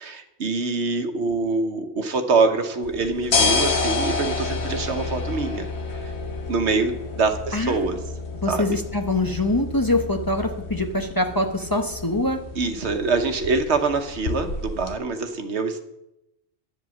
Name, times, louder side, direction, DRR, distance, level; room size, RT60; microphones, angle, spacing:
voice 1, 0.0-5.7 5.9-6.1 6.5-8.0 8.5-8.8 12.6-15.8, right 4 dB, 85° right, 7 dB, 1.3 m, -24 dB
sound 1, 2.8-14.9, left 3 dB, 75° left, 1.5 m, -29 dB
voice 2, 7.5-7.9 8.4-12.4, left 2 dB, 20° left, 4 dB, 0.8 m, -24 dB
9.8 x 7.7 x 7.0 m, 0.86 s
omnidirectional pair, 1.1 m